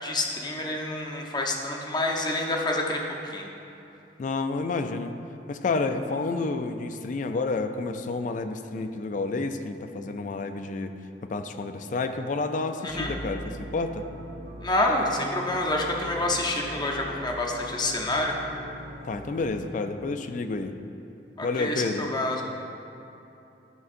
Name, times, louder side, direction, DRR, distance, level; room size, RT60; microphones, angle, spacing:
voice 1, 0.0-3.5 12.8-13.1 14.6-18.4 21.4-22.4, left 1 dB, 25° left, 0 dB, 0.7 m, -28 dB
voice 2, 4.2-5.1 5.5-10.9 11.2-14.1 19.1-20.7 21.4-22.1, left 3 dB, 45° left, 8 dB, 0.4 m, -30 dB
sound 1, 12.9-19.5, equal, 55° right, 0.9 m, -41 dB
11.0 x 6.2 x 2.5 m, 2.8 s
head